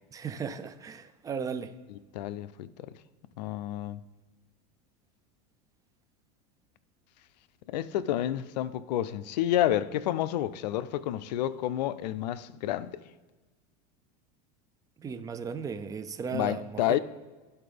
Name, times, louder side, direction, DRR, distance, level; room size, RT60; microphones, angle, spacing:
voice 1, 0.1-1.7 15.0-17.0, right 6 dB, 15° right, 0.4 m, -36 dB
voice 2, 1.9-2.9 3.4-4.0 7.7-13.0 16.3-17.0, left 12 dB, 85° left, 0.5 m, -30 dB
12.0 x 4.3 x 3.4 m
supercardioid pair, 130°, 21 cm